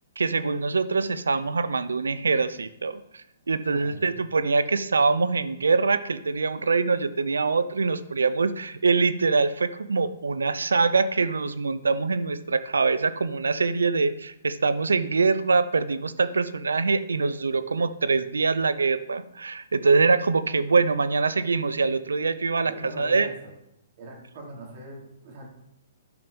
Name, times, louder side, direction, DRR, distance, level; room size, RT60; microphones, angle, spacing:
voice 1, 0.2-22.7 23.0-23.3, right 4 dB, 90° right, 14 dB, 0.6 m, -24 dB
voice 2, 3.7-4.2 22.6-23.5 24.0-25.5, right 1 dB, 50° right, -2 dB, 4.1 m, -41 dB
9.5 x 6.0 x 5.2 m, 0.81 s
hypercardioid pair, 135°, 0 cm